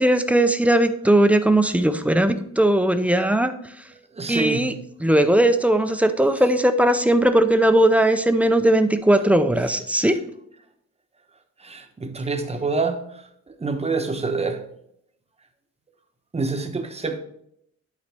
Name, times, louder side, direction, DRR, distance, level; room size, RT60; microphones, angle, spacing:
voice 1, 0.0-3.5 4.3-4.7 5.0-10.2, right 1 dB, 5° right, 0.4 m, -18 dB
voice 2, 4.2-4.7 11.6-13.0 13.6-14.6 16.3-17.2, right 4 dB, 20° right, 0.9 m, -26 dB
10.5 x 4.1 x 3.4 m
wide cardioid pair, 125°, 29 cm